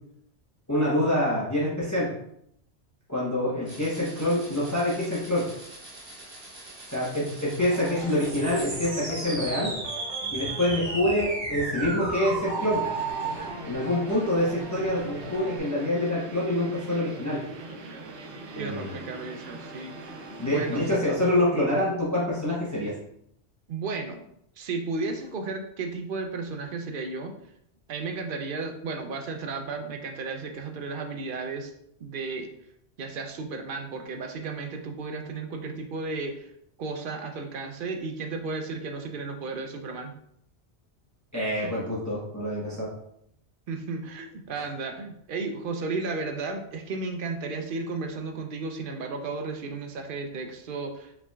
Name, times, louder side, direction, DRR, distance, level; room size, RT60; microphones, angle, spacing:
voice 1, 0.7-2.1 3.1-5.5 6.9-9.7 10.3-12.8 13.6-17.4 18.5-19.0 20.4-22.9 41.3-42.9 44.6-44.7, left 1 dB, 15° left, -7 dB, 0.9 m, -26 dB
sound 1, 3.7-13.5, right 3 dB, 25° right, 1.0 m, -35 dB
sound 2, 7.6-15.6, left 1 dB, 60° left, 1.0 m, -41 dB
sound 3, 12.5-21.0, right 2 dB, 80° right, 1.0 m, -42 dB
voice 2, 18.6-20.9 23.7-24.3 24.6-27.3 27.9-31.7 32.0-32.5 33.0-36.5 36.8-40.2 43.7-51.3, right 3 dB, 60° right, 4 dB, 0.7 m, -34 dB
4.9 x 3.3 x 2.3 m, 0.73 s
omnidirectional pair, 1.2 m